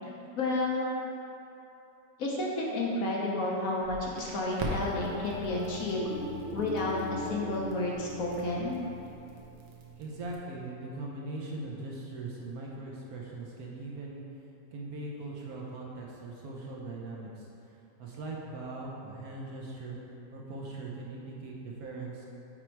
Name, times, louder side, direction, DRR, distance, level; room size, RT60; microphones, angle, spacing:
voice 1, 0.4-0.9 2.2-6.1 6.5-8.8, left 2 dB, 60° left, -3 dB, 1.1 m, -31 dB
Crackle, 3.8-10.4, right 1 dB, 85° right, 1.5 m, -43 dB
sound 1, 4.7-10.0, left 1 dB, 15° right, 0.5 m, -41 dB
voice 2, 10.0-14.2 14.7-17.5 18.0-22.3, right 2 dB, 60° right, -3 dB, 1.2 m, -40 dB
6.1 x 4.5 x 4.5 m, 2.8 s
omnidirectional pair, 1.9 m